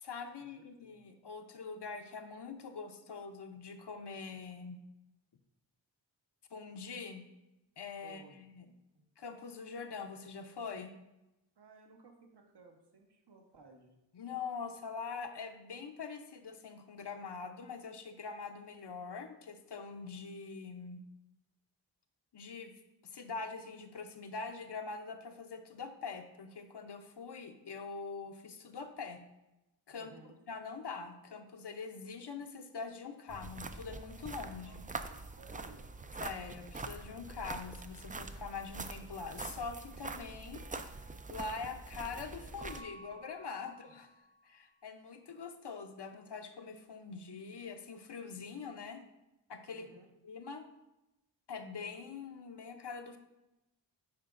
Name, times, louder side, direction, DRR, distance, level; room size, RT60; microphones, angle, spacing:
voice 1, 0.0-4.8 6.5-7.2 7.8-8.7 9.2-10.9 14.1-21.0 22.3-22.7 23.0-29.2 29.9-30.1 30.5-34.8 36.2-41.0 41.3-44.1 44.4-49.0 49.5-49.9 50.2-50.6 51.5-53.2, left 5 dB, 60° left, 6 dB, 0.6 m, -44 dB
voice 2, 8.0-8.4 8.9-9.1 11.6-13.9 29.9-30.4 34.6-35.9 49.7-50.1, right 3 dB, 60° right, 3 dB, 1.0 m, -58 dB
sound 1, 33.3-42.8, right 3 dB, 20° right, 0.3 m, -44 dB
Keyboard (musical) / Bell, 42.6-45.0, right 1 dB, 75° right, 2.2 m, -56 dB
10.5 x 3.8 x 2.5 m, 0.95 s
cardioid pair, 40°, 46 cm